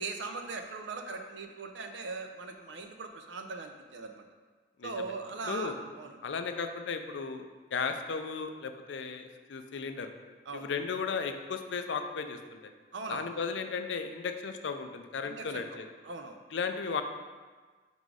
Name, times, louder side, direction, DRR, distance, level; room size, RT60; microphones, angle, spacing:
voice 1, 0.0-4.2 4.8-6.2 10.5-10.7 12.9-13.3 15.2-16.4, right 3 dB, 80° right, 6 dB, 0.6 m, -40 dB
voice 2, 5.4-5.7 6.2-10.1 10.5-12.7 13.1-15.9 16.5-17.0, left 5 dB, 80° left, 7 dB, 0.5 m, -35 dB
4.9 x 4.1 x 4.7 m, 1.4 s
head